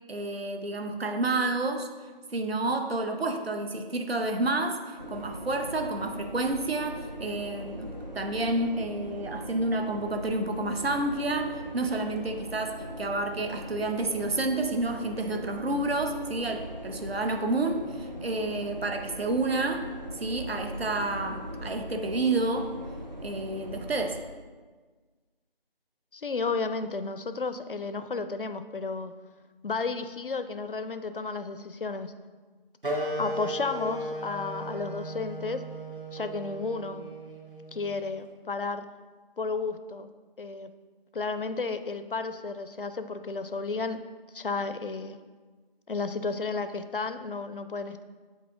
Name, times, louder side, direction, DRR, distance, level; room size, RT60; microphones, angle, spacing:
voice 1, 0.1-1.9 2.3-19.9 20.1-22.7 23.2-24.2, right 2 dB, 90° right, 5 dB, 0.8 m, -30 dB
sound 1, 5.0-24.2, equal, 45° right, 0.6 m, -40 dB
voice 2, 26.1-29.1 29.6-32.1 33.2-35.6 36.1-37.1 37.7-38.8 39.4-40.1 40.4-40.7 41.1-44.0 44.3-45.2 45.9-48.0, left 4 dB, 65° left, 10 dB, 0.4 m, -32 dB
Wind instrument woodwind instrument, 32.8-37.9, right 1 dB, 65° right, 1.1 m, -36 dB
7.2 x 4.0 x 3.7 m, 1.4 s
figure-of-eight pair, 180°, 29 cm